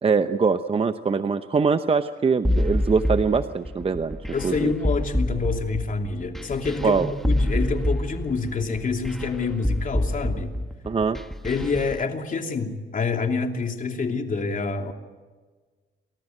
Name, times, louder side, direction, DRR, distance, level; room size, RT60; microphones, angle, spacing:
voice 1, 0.0-4.2 4.4-4.7 6.8-7.1 10.9-11.2, right 5 dB, 30° right, 8 dB, 0.8 m, -23 dB
sound 1, 2.4-12.0, left 1 dB, ahead, 1.3 m, -26 dB
voice 2, 4.3-10.5 11.4-14.9, left 4 dB, 40° left, 4 dB, 2.9 m, -27 dB
28.5 x 13.5 x 9.3 m, 1.4 s
cardioid pair, 90°, 20 cm